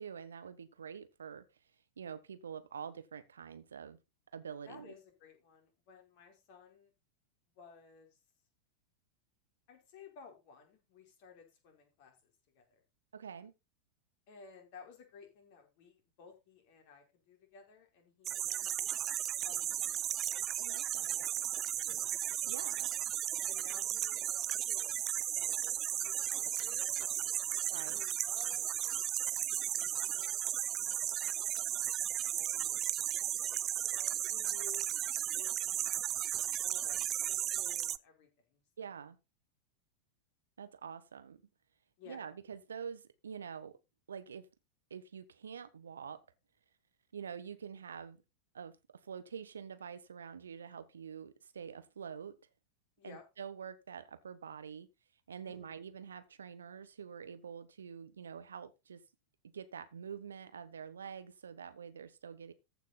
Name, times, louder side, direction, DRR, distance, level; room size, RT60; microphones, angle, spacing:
voice 1, 0.0-1.5 2.0-4.0 4.3-4.9 13.1-13.5 20.6-21.3 21.9-22.0 22.5-22.9 27.7-28.0 38.8-39.2 40.6-41.4 42.1-43.7 44.1-44.5 44.9-46.2 47.1-48.2 48.5-48.8 49.0-52.4 53.0-54.9 55.3-59.0 59.4-62.5, right 7 dB, 70° right, 1.2 m, -46 dB
voice 2, 4.6-6.9 7.5-8.2 9.7-12.8 14.3-18.8 19.3-20.0 20.9-21.5 21.7-22.2 23.5-27.4 27.9-29.4 29.7-35.5 35.8-36.1 36.6-38.9 42.0-42.2 53.0-53.2 55.4-55.8, left 6 dB, 45° left, 4.9 m, -57 dB
sound 1, 18.2-38.0, right 12 dB, 30° right, 0.5 m, -35 dB
14.5 x 6.1 x 4.2 m
figure-of-eight pair, 90°, 0 cm